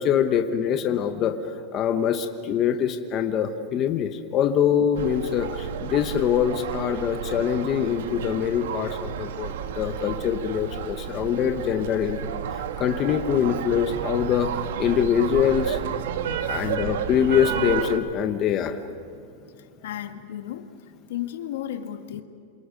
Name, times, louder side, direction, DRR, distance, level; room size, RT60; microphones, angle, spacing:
voice 1, 0.0-1.3 1.7-12.2 12.5-14.5 14.8-15.8 16.5-18.8, left 8 dB, 25° left, 6 dB, 1.1 m, -24 dB
sound 1, 5.0-18.0, right 8 dB, 75° right, 1.4 m, -31 dB
voice 2, 16.4-16.8 19.8-20.7 21.1-22.2, left 11 dB, 75° left, 7 dB, 1.8 m, -34 dB
27.5 x 27.5 x 5.2 m, 2.5 s
supercardioid pair, 175°, 0 cm